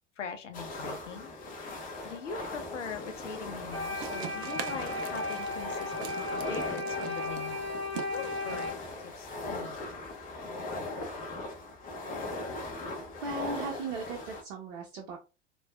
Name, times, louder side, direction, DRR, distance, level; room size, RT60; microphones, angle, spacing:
voice 1, 0.2-6.1 6.5-7.7 7.9-8.8 9.1-9.9 10.2-11.2, left 6 dB, 75° left, 0.7 m, -42 dB
sound 1, 0.5-14.4, left 2 dB, 20° left, 0.7 m, -40 dB
sound 2, 3.7-8.7, left 2 dB, 5° left, 1.4 m, -36 dB
sound 3, 3.9-10.4, right 7 dB, 25° right, 0.4 m, -43 dB
voice 2, 13.2-15.2, right 3 dB, 45° right, 0.8 m, -37 dB
4.3 x 2.3 x 2.3 m
figure-of-eight pair, 85°, 37 cm